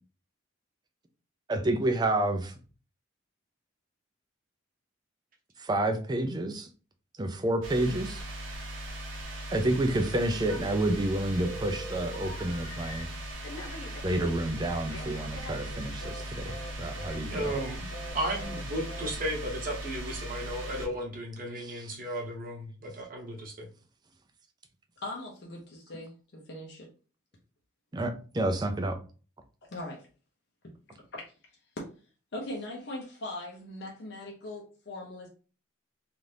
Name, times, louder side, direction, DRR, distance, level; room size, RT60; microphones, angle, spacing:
voice 1, 1.5-2.5 5.6-6.7 7.2-8.2 9.5-13.1 14.0-16.5 16.8-17.5 21.6-21.9 27.9-29.0, right 1 dB, 20° right, 6 dB, 0.4 m, -29 dB
sound 1, 7.6-20.9, right 1 dB, 70° right, 0.7 m, -39 dB
Telephone, 10.5-11.1 11.4-13.0 13.4-16.2 16.5-16.7 17.0-17.2 17.4-17.7 17.9-18.1 18.4-18.6 18.9-19.1, left 1 dB, 85° left, 0.9 m, -43 dB
voice 2, 17.1-23.7, right 1 dB, 45° right, -1 dB, 0.9 m, -35 dB
voice 3, 25.0-26.9 28.6-28.7 29.7-30.0 30.9-31.3 31.8-31.9 32.3-35.3, left 1 dB, 55° left, -1 dB, 0.6 m, -40 dB
2.7 x 2.5 x 3.3 m, 0.37 s
head